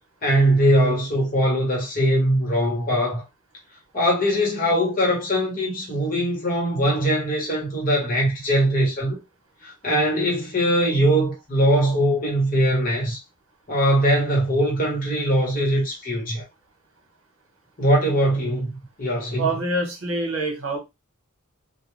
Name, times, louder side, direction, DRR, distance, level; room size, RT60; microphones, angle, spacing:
voice 1, 0.2-3.2 3.9-9.2 9.6-13.2 13.7-16.4 17.8-18.7 19.0-19.5, equal, 40° left, 1.2 m, -21 dB
voice 2, 19.4-20.8, right 2 dB, 70° right, 1.1 m, -25 dB
2.3 x 2.3 x 3.1 m
head